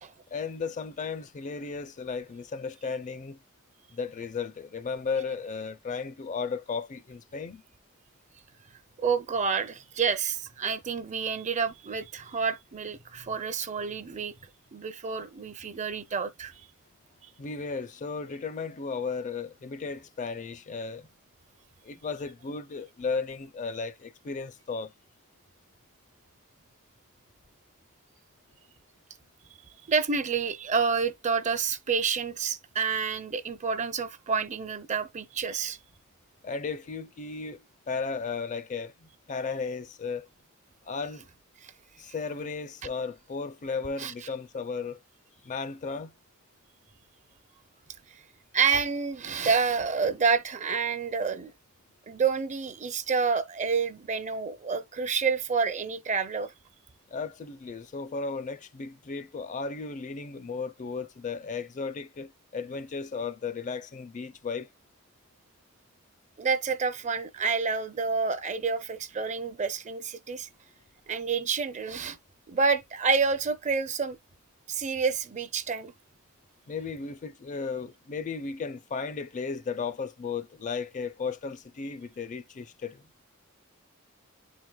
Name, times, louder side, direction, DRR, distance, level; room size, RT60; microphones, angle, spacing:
voice 1, 0.3-3.4 3.9-7.6 17.4-21.1 21.8-24.9 36.4-40.3 40.9-41.3 42.0-45.0 45.4-46.1 57.1-64.7 76.7-83.0, left 5 dB, 35° left, 0.4 m, -35 dB
voice 2, 9.0-14.3 14.7-16.5 29.9-35.8 41.6-41.7 44.0-44.1 48.5-51.5 52.1-56.5 66.4-70.5 71.1-72.2 72.5-74.2 74.7-75.9, right 5 dB, 35° right, 0.5 m, -28 dB
9.6 x 4.7 x 2.2 m
head